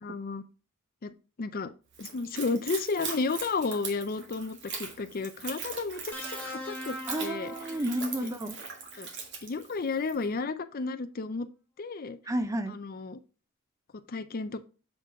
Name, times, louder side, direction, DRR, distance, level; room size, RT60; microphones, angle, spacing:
voice 1, 0.0-0.4 1.0-1.7 2.0-7.5 9.0-9.1 9.4-11.5 11.8-12.2 12.7-13.2 14.1-14.6, left 4 dB, 40° left, 12 dB, 0.5 m, -33 dB
Splash splatter / Trickle dribble, 1.9-10.3, right 5 dB, 55° right, 1.6 m, -41 dB
sound 1, 6.1-8.4 9.7-9.9, left 1 dB, 10° left, 0.9 m, -41 dB
voice 2, 7.1-8.6 12.3-12.8, right 1 dB, 15° right, 9 dB, 0.6 m, -31 dB
7.3 x 3.8 x 4.6 m, 0.34 s
head